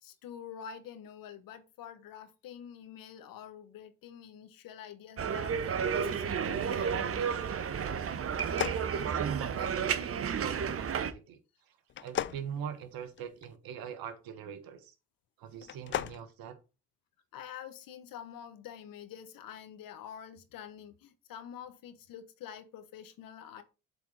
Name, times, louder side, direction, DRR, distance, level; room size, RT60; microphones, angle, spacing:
voice 1, 0.0-7.3 17.3-23.6, left 9 dB, 60° left, 1.1 m, -47 dB
sound 1, 5.2-11.1, right 7 dB, 35° right, 0.8 m, -32 dB
sound 2, 8.3-9.7 11.9-13.5 15.5-16.2, left 11 dB, 30° left, 0.4 m, -37 dB
voice 2, 8.8-11.4 11.7-11.8 12.0-14.9 15.4-16.6, right 8 dB, 65° right, 1.4 m, -42 dB
7.8 x 4.1 x 4.1 m
hypercardioid pair, 55°, 38 cm